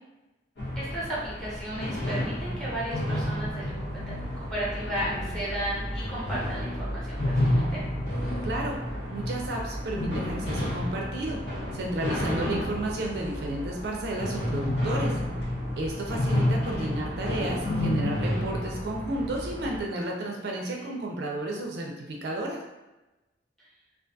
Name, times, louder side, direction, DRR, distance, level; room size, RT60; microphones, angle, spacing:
sound 1, 0.6-19.8, left 1 dB, 70° left, 0.8 m, -30 dB
voice 1, 0.8-7.8 12.1-12.7 20.8-20.9 23.6-23.7, right 1 dB, 5° left, -8 dB, 0.7 m, -35 dB
voice 2, 8.4-8.8 9.1-11.4 11.7-15.2 15.8-22.6, right 1 dB, 65° right, 0 dB, 0.4 m, -32 dB
2.3 x 2.3 x 2.6 m, 1.0 s
head